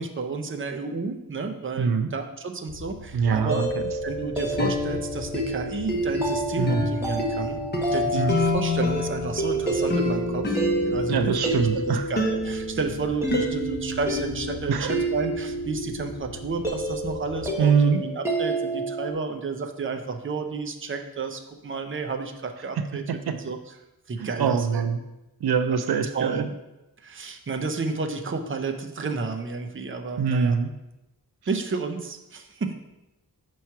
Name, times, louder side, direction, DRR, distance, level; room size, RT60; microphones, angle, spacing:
voice 1, 0.0-3.7 4.0-7.6 7.9-23.6 24.1-24.8 26.1-26.6 27.0-30.6 31.5-32.7, right 4 dB, 35° right, 4 dB, 0.6 m, -31 dB
voice 2, 1.8-2.1 3.1-3.7 6.6-6.9 8.1-8.4 11.1-12.0 14.7-14.9 17.6-18.0 22.8-23.4 24.2-25.0 25.4-26.5 30.2-30.7, right 6 dB, 90° right, 9 dB, 0.5 m, -23 dB
sound 1, 2.7-17.5, left 3 dB, 85° left, 0.7 m, -42 dB
sound 2, 3.2-19.1, right 1 dB, 5° right, 1.2 m, -30 dB
sound 3, 4.4-11.7 12.2-13.5, left 1 dB, 25° left, 1.0 m, -28 dB
5.7 x 3.1 x 5.6 m, 0.96 s
wide cardioid pair, 80°, 37 cm